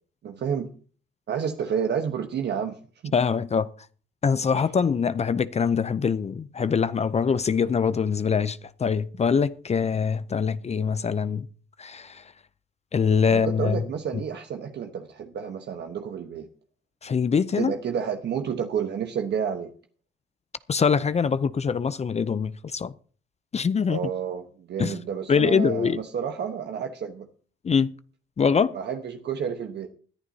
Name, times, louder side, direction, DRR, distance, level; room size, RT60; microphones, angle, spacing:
voice 1, 0.2-0.7 1.3-3.1 13.3-16.5 17.6-19.7 23.9-27.3 28.7-29.9, right 7 dB, 60° right, 1.1 m, -30 dB
voice 2, 3.1-3.7 4.2-11.4 11.8-12.2 12.9-13.8 17.0-17.7 20.7-22.9 23.5-24.0 24.8-25.0 25.3-26.0 27.6-27.9 28.4-28.8, left 6 dB, 35° left, 0.6 m, -23 dB
20.5 x 11.0 x 2.8 m
cardioid pair, 90°, 20 cm